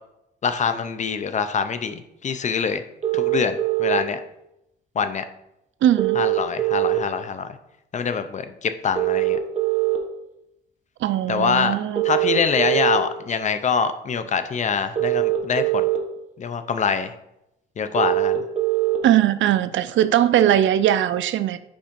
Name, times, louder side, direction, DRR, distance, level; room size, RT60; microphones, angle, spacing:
voice 1, 0.4-2.8 3.1-4.2 5.0-5.2 6.2-7.5 7.9-9.4 11.3-11.7 12.0-15.9 16.4-17.1 17.8-18.4, left 6 dB, 40° left, 10 dB, 0.6 m, -24 dB
sound 1, 3.0-4.0 6.0-7.0 8.9-10.0 11.9-13.0 14.9-16.0 17.9-19.0, right 14 dB, 35° right, 1.1 m, -22 dB
voice 2, 5.8-6.2 11.0-12.0 19.0-21.6, right 11 dB, 80° right, 13 dB, 0.5 m, -19 dB
5.2 x 4.8 x 5.3 m, 0.84 s
cardioid pair, 125°, 19 cm